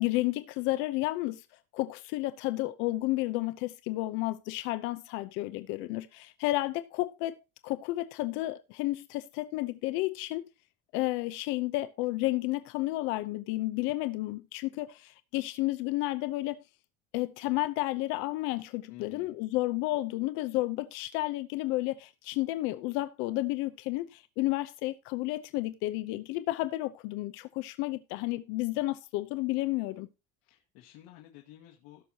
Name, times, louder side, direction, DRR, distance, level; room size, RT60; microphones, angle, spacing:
voice 1, 0.0-1.4 1.7-7.4 7.6-10.4 10.9-16.6 17.1-30.1, left 18 dB, 70° left, 0.7 m, -31 dB
voice 2, 18.9-19.3 30.4-32.0, left 13 dB, 85° left, 1.9 m, -52 dB
17.5 x 6.3 x 2.8 m
cardioid pair, 165°, 21 cm